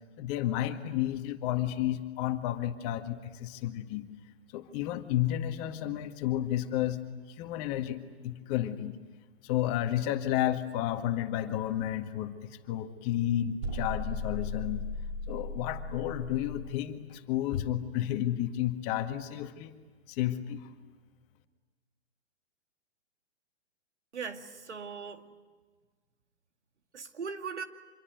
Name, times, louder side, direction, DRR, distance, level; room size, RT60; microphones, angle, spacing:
voice 1, 0.2-4.1 4.5-7.0 7.3-9.0 9.4-14.9 15.3-19.7 20.1-20.7, left 12 dB, 35° left, 7 dB, 1.9 m, -31 dB
sound 1, 13.6-16.7, left 2 dB, 40° right, 6.3 m, -36 dB
voice 2, 24.1-25.3 26.9-27.6, right 5 dB, 80° right, 7 dB, 2.4 m, -39 dB
26.5 x 23.0 x 9.4 m, 1.4 s
hypercardioid pair, 130°, 34 cm